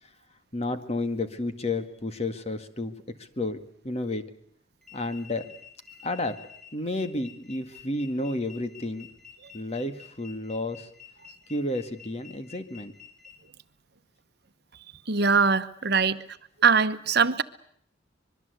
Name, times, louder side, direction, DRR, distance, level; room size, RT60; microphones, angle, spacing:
voice 1, 0.5-2.9 3.4-3.6 3.8-4.2 4.9-5.5 6.0-6.4 6.7-9.1 9.5-10.9 11.5-12.9, left 2 dB, 35° left, 2.0 m, -31 dB
sound 1, 4.8-13.3, left 8 dB, 5° left, 7.6 m, -49 dB
voice 2, 15.1-16.2 16.6-17.4, right 5 dB, 60° right, 1.1 m, -22 dB
25.0 x 22.5 x 8.2 m
head